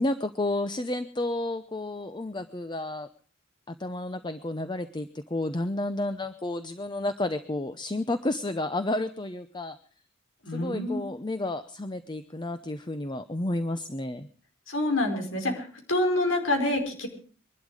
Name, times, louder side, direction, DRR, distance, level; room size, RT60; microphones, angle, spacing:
voice 1, 0.0-3.1 3.7-9.8 10.5-14.3, left 2 dB, 20° left, 10 dB, 0.7 m, -31 dB
voice 2, 10.4-11.0 14.7-17.1, left 1 dB, 75° left, 3 dB, 5.0 m, -27 dB
23.0 x 12.0 x 4.9 m, 0.43 s
head